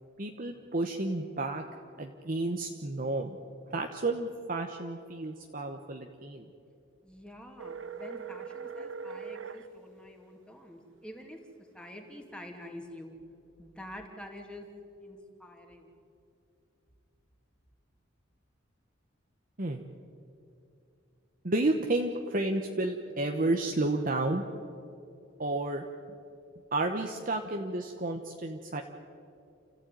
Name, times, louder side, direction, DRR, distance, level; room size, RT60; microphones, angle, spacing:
voice 1, 0.2-1.6 2.0-3.4 3.7-6.4 19.6-19.8 21.4-24.4 25.4-25.8 26.7-28.8, right 2 dB, 45° right, 3 dB, 1.1 m, -31 dB
voice 2, 7.0-11.4 11.7-13.2 13.6-14.7 15.0-15.9, left 1 dB, 5° left, 3 dB, 2.5 m, -47 dB
sound 1, 7.6-9.7, right 5 dB, 75° right, 1.1 m, -40 dB
29.5 x 14.5 x 9.3 m, 2.6 s
head